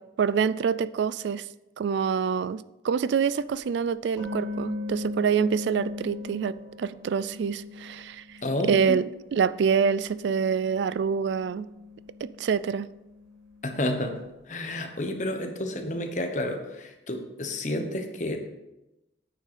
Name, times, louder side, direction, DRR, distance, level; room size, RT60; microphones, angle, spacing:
voice 1, 0.2-1.5 1.8-8.4 8.6-9.0 9.3-11.7 12.2-12.9, right 6 dB, 75° right, 0.3 m, -26 dB
sound 1, 3.5-3.6 4.2-8.9 9.1-14.0, left 3 dB, ahead, 3.9 m, -40 dB
voice 2, 8.4-9.0 13.6-14.1 14.5-18.5, left 1 dB, 40° left, 1.1 m, -30 dB
9.1 x 6.4 x 5.0 m
head